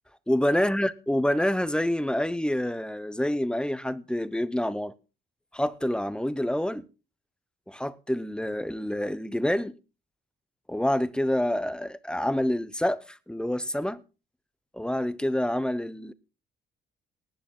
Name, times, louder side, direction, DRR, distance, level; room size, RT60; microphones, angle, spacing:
voice 1, 0.3-4.9 5.5-6.8 7.7-9.7 10.7-14.0 14.7-16.1, left 1 dB, 5° left, 0.8 m, -27 dB
18.5 x 10.0 x 3.8 m
cardioid pair, 90°, 20 cm